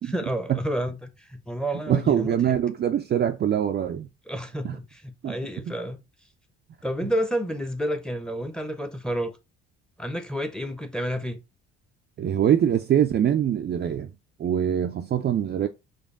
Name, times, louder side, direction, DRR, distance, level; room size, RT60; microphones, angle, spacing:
voice 1, 0.0-2.6 4.3-6.0 6.8-9.4 10.0-11.4, equal, 5° left, 0.8 m, -30 dB
voice 2, 1.9-4.1 4.6-4.8 5.2-5.4 5.7-5.8 12.2-14.1 14.4-15.7, right 9 dB, 35° right, 0.4 m, -23 dB
5.1 x 2.3 x 3.6 m
hypercardioid pair, 60°, 31 cm